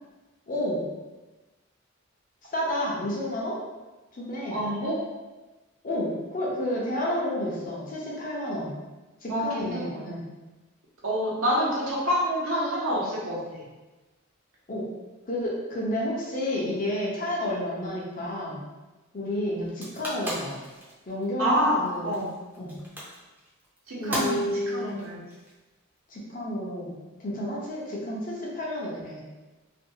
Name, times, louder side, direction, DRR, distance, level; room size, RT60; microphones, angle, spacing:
voice 1, 0.5-0.8 2.5-3.6 4.1-4.6 5.8-8.7 9.2-10.3 14.7-14.9 15.3-18.6 19.1-20.6 21.1-22.2 22.6-22.8 24.0-25.0 26.1-29.2, left 1 dB, 40° left, -4 dB, 0.6 m, -30 dB
voice 2, 4.5-5.0 9.3-10.1 11.0-13.6 21.4-22.3 23.9-25.2, equal, 90° right, -5 dB, 0.9 m, -27 dB
sound 1, 19.6-26.0, equal, 10° right, 0.5 m, -37 dB
2.6 x 2.3 x 2.7 m, 1.2 s
head